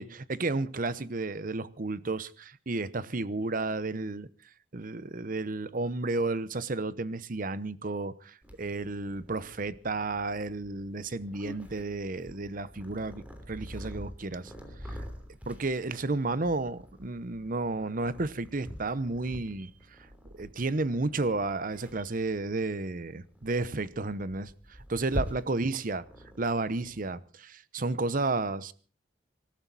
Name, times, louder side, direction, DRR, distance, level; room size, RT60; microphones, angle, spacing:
voice 1, 0.0-4.3 4.7-14.5 14.9-15.0 15.5-19.7 20.4-24.5 24.9-26.0 26.4-28.7, right 3 dB, 50° right, 0.8 m, -32 dB
Purr, 8.4-27.1, equal, 10° right, 3.2 m, -45 dB
25.5 x 13.5 x 4.1 m
head